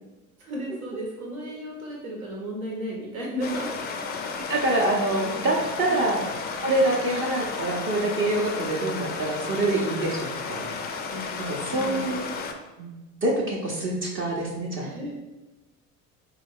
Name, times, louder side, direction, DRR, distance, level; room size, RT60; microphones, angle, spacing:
voice 1, 0.4-3.7 5.9-6.0 11.1-11.3 11.7-12.1 14.8-15.1, equal, 80° right, -2 dB, 1.1 m, -34 dB
Stream, 3.4-12.5, left 4 dB, 25° left, 0.4 m, -33 dB
voice 2, 4.5-6.2 6.6-10.7 11.4-12.2 12.8-12.9 13.2-14.9, right 2 dB, 30° right, -2 dB, 0.6 m, -26 dB
3.7 x 2.3 x 3.4 m, 1.1 s
figure-of-eight pair, 65°, 42 cm